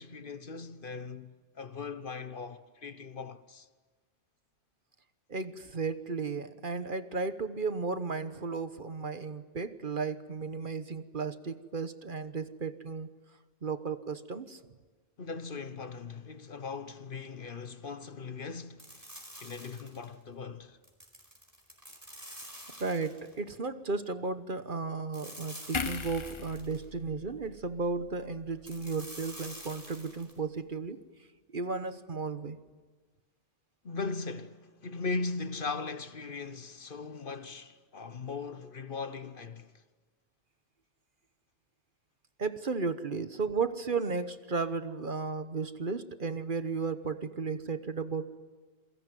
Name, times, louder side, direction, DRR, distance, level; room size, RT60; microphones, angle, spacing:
voice 1, 0.0-3.7 15.2-19.1 19.4-20.8 33.8-39.7, left 4 dB, 50° left, 1.2 m, -39 dB
voice 2, 5.3-13.1 13.6-14.6 22.8-31.0 31.5-32.6 42.4-48.3, right 4 dB, 50° right, 1.3 m, -34 dB
sound 1, 18.8-20.1 20.8-23.4 25.1-26.8 28.6-30.4, equal, 15° right, 4.7 m, -48 dB
sound 2, 25.7-29.1 29.5-29.6, left 4 dB, 30° left, 0.8 m, -40 dB
27.5 x 22.5 x 9.3 m
omnidirectional pair, 1.2 m